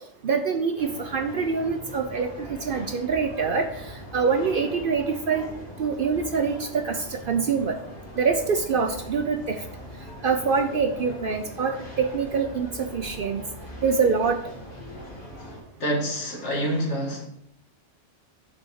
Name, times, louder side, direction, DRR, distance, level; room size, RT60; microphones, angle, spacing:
voice 1, 0.2-5.4 5.8-7.8 8.2-9.6 10.2-13.4 13.8-14.4, right 5 dB, 55° right, 0.7 m, -25 dB
sound 1, 0.8-15.6, equal, 45° left, 2.2 m, -41 dB
voice 2, 15.8-17.3, equal, 65° left, 2.0 m, -27 dB
6.2 x 4.3 x 6.2 m
omnidirectional pair, 1.3 m